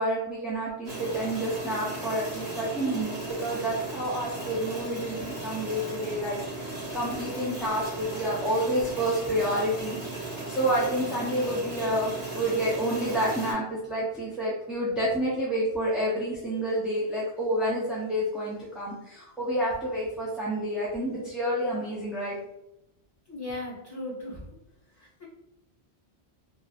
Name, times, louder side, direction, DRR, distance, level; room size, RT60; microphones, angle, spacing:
voice 1, 0.0-10.0 10.5-22.4, right 1 dB, ahead, -7 dB, 0.5 m, -29 dB
sound 1, 0.8-13.5, right 2 dB, 40° right, 0.9 m, -36 dB
voice 2, 23.3-24.5 25.0-25.2, left 1 dB, 20° left, -6 dB, 1.4 m, -37 dB
3.0 x 2.5 x 2.4 m, 0.86 s
omnidirectional pair, 1.1 m